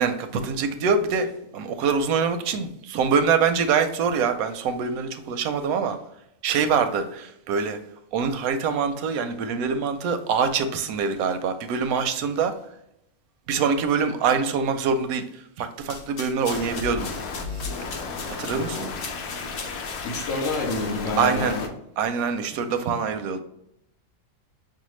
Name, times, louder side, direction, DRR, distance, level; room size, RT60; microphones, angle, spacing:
voice 1, 0.0-6.0 6.4-7.8 8.1-12.5 13.5-17.1 17.5-17.6 18.3-18.9 21.2-21.6 22.0-23.4, right 5 dB, 85° right, 1.0 m, -24 dB
sound 1, 15.8-21.2, left 4 dB, 50° left, 0.7 m, -40 dB
sound 2, 16.5-21.7, left 4 dB, 85° left, 1.1 m, -33 dB
voice 2, 18.5-18.9 20.0-21.7, left 2 dB, 70° left, 1.1 m, -28 dB
5.5 x 2.2 x 3.1 m
omnidirectional pair, 1.5 m